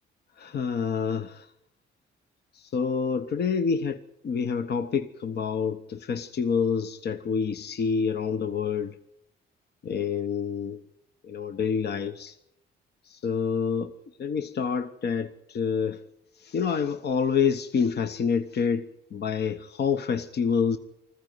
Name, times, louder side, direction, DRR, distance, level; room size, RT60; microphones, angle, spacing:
voice 1, 0.4-1.5 2.5-8.9 9.8-10.8 11.3-12.3 13.1-13.9 14.2-16.0 16.4-20.8, left 6 dB, 55° left, 1.0 m, -27 dB
20.5 x 14.5 x 9.4 m
cardioid pair, 90°, 20 cm